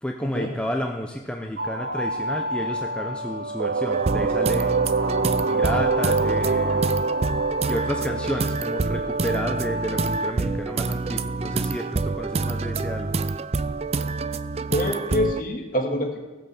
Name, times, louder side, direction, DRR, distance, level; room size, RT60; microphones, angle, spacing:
voice 1, 0.0-4.8 5.5-7.0 7.7-13.2, equal, 5° left, 2 dB, 0.7 m, -31 dB
sound 1, 1.6-10.3, equal, 55° right, 1.5 m, -30 dB
sound 2, 3.6-9.3, right 5 dB, 90° right, 0.5 m, -26 dB
sound 3, 3.9-15.4, right 3 dB, 35° right, 0.4 m, -27 dB
voice 2, 14.7-16.2, left 1 dB, 45° left, 2 dB, 2.2 m, -25 dB
16.0 x 7.9 x 7.1 m, 1.2 s
head